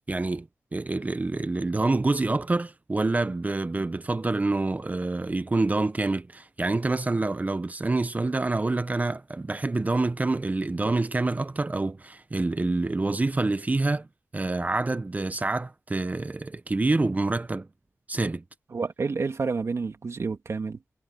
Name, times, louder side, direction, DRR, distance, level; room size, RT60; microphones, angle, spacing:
voice 1, 0.1-14.1 14.3-17.7 18.1-18.4, right 2 dB, 30° right, 0.7 m, -27 dB
voice 2, 18.7-20.8, right 4 dB, 60° right, 2.7 m, -29 dB
wide cardioid pair, 95°, 5 cm